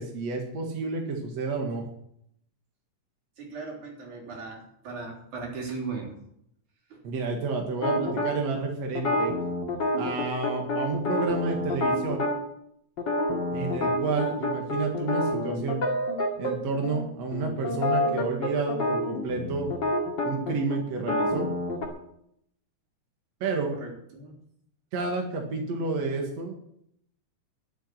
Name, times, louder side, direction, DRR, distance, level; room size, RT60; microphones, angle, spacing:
voice 1, 0.0-1.8 7.0-9.3 10.0-12.2 13.5-15.8 16.4-19.7 20.2-21.5 23.4-23.8 24.9-26.6, right 4 dB, 65° right, 1 dB, 3.0 m, -30 dB
voice 2, 3.4-6.1 6.9-7.0 23.7-24.4, right 4 dB, 85° right, 0 dB, 5.0 m, -38 dB
sound 1, 7.8-8.3 8.9-12.4 13.0-16.5 16.8-17.0 17.3-21.9, left 1 dB, 40° left, 2.7 m, -28 dB
11.5 x 8.3 x 9.9 m, 0.72 s
omnidirectional pair, 3.4 m